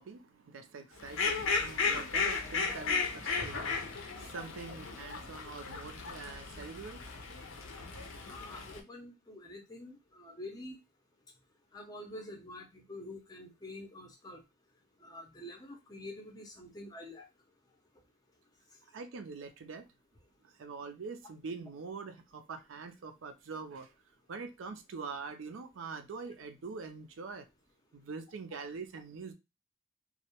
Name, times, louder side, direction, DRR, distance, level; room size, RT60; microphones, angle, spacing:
voice 1, 0.0-7.0 18.9-19.8 20.4-23.9 24.3-27.5 27.9-29.3, right 4 dB, 80° right, 0.4 m, -44 dB
Fowl, 1.0-8.8, left 4 dB, 85° left, 0.5 m, -35 dB
voice 2, 8.2-10.8 11.7-14.4 15.0-17.3, left 1 dB, 20° left, 0.5 m, -47 dB
2.2 x 2.0 x 2.8 m
head